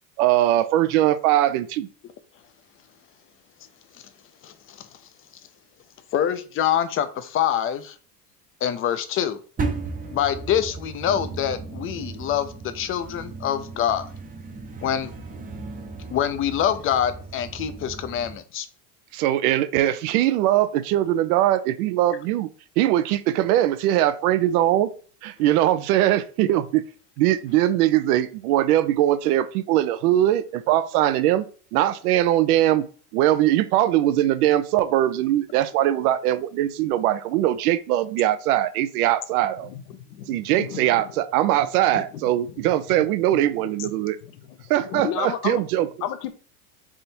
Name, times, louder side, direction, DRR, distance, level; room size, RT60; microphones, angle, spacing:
voice 1, 0.2-1.9 19.1-22.5 22.8-24.9 25.2-26.8 27.2-31.5 31.7-32.9 33.1-39.7 40.3-44.2 44.7-45.9, right 13 dB, 75° right, 0.6 m, -21 dB
voice 2, 4.4-4.9 6.1-8.0 8.6-9.4 10.1-14.1 14.8-15.1 16.1-18.7, left 9 dB, 30° left, 0.5 m, -25 dB
sound 1, 9.6-18.4, right 3 dB, 20° right, 0.6 m, -35 dB
voice 3, 39.6-41.1 41.9-42.0 42.9-43.4 44.8-45.6 46.0-46.3, left 9 dB, 80° left, 0.8 m, -32 dB
3.6 x 2.6 x 4.3 m
supercardioid pair, 100°, 46 cm